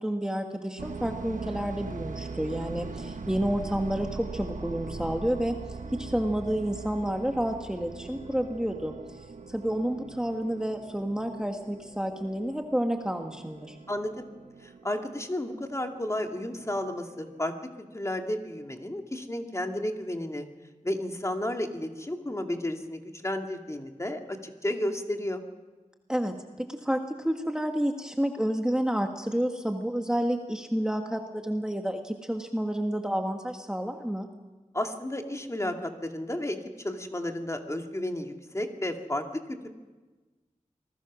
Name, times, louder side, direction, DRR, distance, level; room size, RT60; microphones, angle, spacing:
voice 1, 0.0-9.2 9.5-13.8 26.1-34.3, equal, 5° right, 3 dB, 1.5 m, -30 dB
sound 1, 0.8-17.5, right 4 dB, 85° right, 1.1 m, -41 dB
voice 2, 13.9-14.3 14.6-17.5 17.9-20.5 20.8-25.4 34.7-39.7, left 1 dB, 25° left, 4 dB, 2.3 m, -32 dB
27.0 x 20.0 x 6.2 m, 1.2 s
wide cardioid pair, 80°, 13 cm